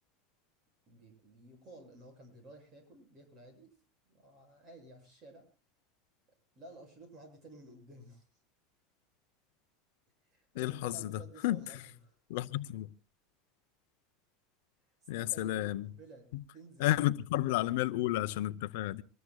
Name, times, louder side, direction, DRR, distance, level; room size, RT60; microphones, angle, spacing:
voice 1, 0.9-3.7 4.0-5.5 6.5-8.2 10.2-11.8 12.0-12.2 15.1-16.3 16.5-17.0 17.3-17.8, right 2 dB, 30° right, 8.0 m, -53 dB
voice 2, 10.6-11.8 12.3-12.9 15.1-15.9 16.3-16.4 16.8-19.0, left 15 dB, 70° left, 0.7 m, -32 dB
24.5 x 19.5 x 2.3 m
supercardioid pair, 160°, 0 cm